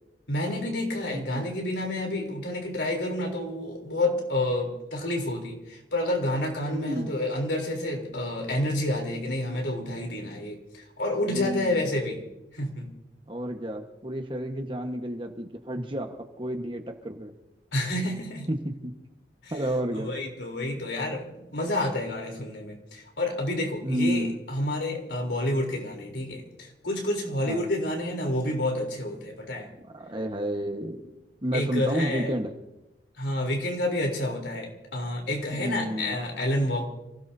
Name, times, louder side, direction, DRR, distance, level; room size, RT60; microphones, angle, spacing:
voice 1, 0.3-12.2 12.5-12.9 17.7-18.5 19.4-19.5 19.9-29.7 31.5-32.3 33.2-36.9, left 1 dB, 75° left, 1 dB, 3.7 m, -29 dB
voice 2, 1.1-1.5 6.7-7.2 10.2-10.4 11.3-12.0 13.3-17.3 18.5-18.9 19.5-20.1 23.8-24.4 27.4-27.7 29.9-31.1 31.4-32.5 35.5-36.2, equal, 30° right, 5 dB, 1.4 m, -31 dB
27.5 x 16.5 x 2.8 m, 0.95 s
head